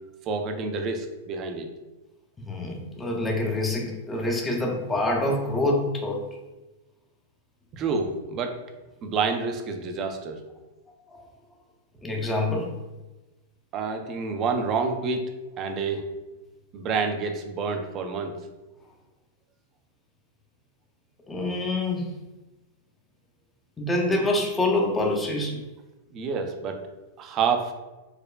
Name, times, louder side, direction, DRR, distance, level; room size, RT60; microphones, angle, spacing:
voice 1, 0.3-1.7 7.7-8.6 9.0-10.4 13.7-15.2 15.6-16.1 16.7-18.3 26.1-26.8 27.2-27.7, right 5 dB, 35° right, 5 dB, 0.5 m, -28 dB
voice 2, 2.5-6.2 11.1-11.2 12.0-12.7 21.3-22.1 23.8-25.6, left 2 dB, 15° left, 1 dB, 0.6 m, -26 dB
4.8 x 2.2 x 2.3 m, 1.1 s
hypercardioid pair, 105°, 0 cm